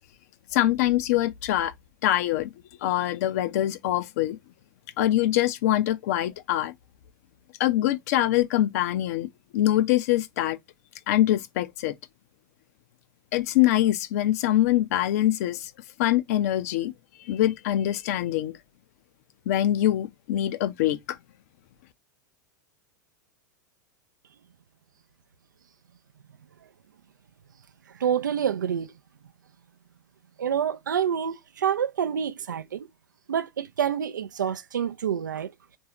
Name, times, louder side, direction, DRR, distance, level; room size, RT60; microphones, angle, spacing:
voice 1, 0.5-1.7 2.0-2.5 2.8-4.4 5.0-6.7 7.6-9.3 9.5-10.6 11.1-11.9 13.3-15.7 16.0-16.9 17.3-18.5 19.5-21.0, left 13 dB, 50° left, 0.6 m, -24 dB
voice 2, 28.0-28.9 30.4-32.9 33.3-35.5, right 8 dB, 70° right, 0.4 m, -27 dB
3.8 x 2.7 x 2.8 m
figure-of-eight pair, 90°, 10 cm